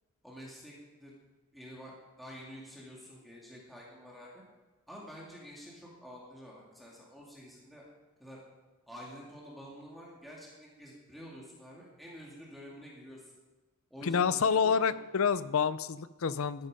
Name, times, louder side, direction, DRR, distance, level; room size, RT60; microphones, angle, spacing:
voice 1, 0.2-0.7 1.0-1.1 1.5-4.4 4.9-7.8 8.2-8.4 8.9-13.3 13.9-14.9, equal, ahead, -5 dB, 2.2 m, -48 dB
voice 2, 14.0-16.7, left 6 dB, 65° left, 16 dB, 0.5 m, -28 dB
14.0 x 8.4 x 5.2 m, 1.2 s
head